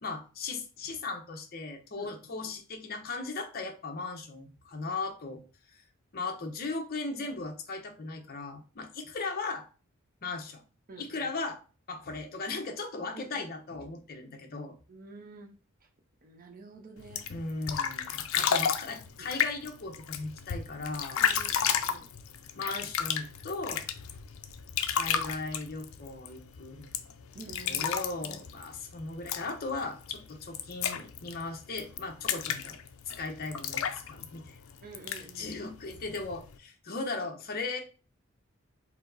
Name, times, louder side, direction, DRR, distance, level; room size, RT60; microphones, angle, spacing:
voice 1, 0.0-5.4 5.7-5.8 6.1-9.6 10.2-10.6 11.0-11.6 11.9-14.8 17.3-21.3 22.6-23.9 24.9-26.9 27.6-32.8 33.2-34.6 35.1-37.8, left 3 dB, 45° left, 3 dB, 0.8 m, -37 dB
voice 2, 10.9-11.3 13.1-13.5 14.9-15.5 16.2-17.3 19.2-19.3 21.2-22.1 27.3-27.9 28.2-28.4 34.8-35.5, right 3 dB, 45° right, 3 dB, 0.7 m, -48 dB
sound 1, 17.0-36.6, left 8 dB, 70° left, 0.5 m, -34 dB
4.7 x 2.0 x 3.9 m, 0.35 s
head